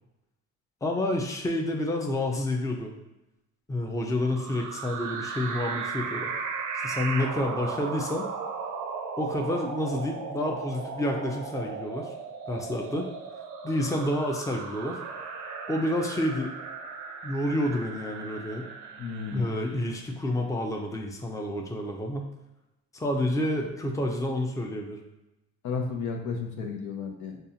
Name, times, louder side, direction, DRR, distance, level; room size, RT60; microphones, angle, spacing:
voice 1, 0.8-2.9 3.7-6.3 6.8-8.3 9.2-12.1 12.5-13.1 13.6-15.0 15.7-16.5 17.2-18.7 19.3-22.3 22.9-25.0, left 1 dB, 10° left, 1 dB, 0.5 m, -29 dB
sound 1, 4.2-19.9, right 5 dB, 85° right, 0.5 m, -36 dB
voice 2, 19.0-19.5 25.6-27.4, left 5 dB, 75° left, 2 dB, 0.8 m, -33 dB
5.3 x 2.4 x 2.7 m, 0.94 s
cardioid pair, 90°, 30 cm